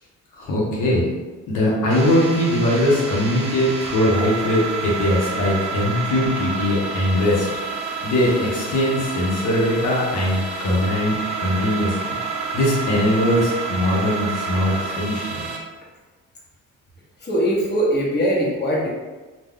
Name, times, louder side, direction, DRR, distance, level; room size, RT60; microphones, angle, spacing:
voice 1, 0.3-1.1 1.5-12.1 12.5-15.5, left 1 dB, 85° left, -5 dB, 0.8 m, -21 dB
sound 1, 1.9-15.6, right 3 dB, 65° right, 0.5 m, -29 dB
voice 2, 17.2-18.9, equal, 35° left, -4 dB, 0.9 m, -21 dB
2.3 x 2.2 x 3.4 m, 1.2 s
cardioid pair, 90°, 30 cm